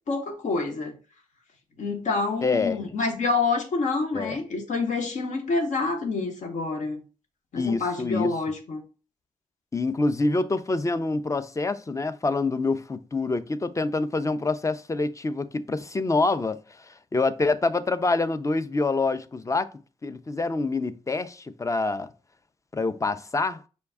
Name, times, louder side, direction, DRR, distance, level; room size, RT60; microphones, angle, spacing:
voice 1, 0.1-0.9 1.8-7.0 7.5-8.8, left 3 dB, 65° left, 1.0 m, -27 dB
voice 2, 2.4-2.9 4.1-4.4 7.6-8.3 9.7-19.7 20.0-22.1 22.7-23.6, left 3 dB, 25° left, 0.5 m, -26 dB
5.3 x 2.2 x 3.4 m
supercardioid pair, 45°, 13 cm